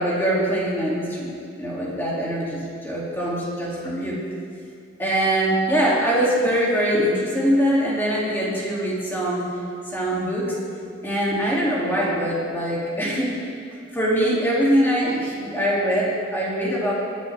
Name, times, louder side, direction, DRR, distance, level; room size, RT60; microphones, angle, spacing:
voice 1, 0.0-4.2 5.0-9.5 9.9-10.6 11.0-13.3 13.9-16.9, equal, 10° left, -6 dB, 2.6 m, -23 dB
26.0 x 9.3 x 3.5 m, 2.3 s
head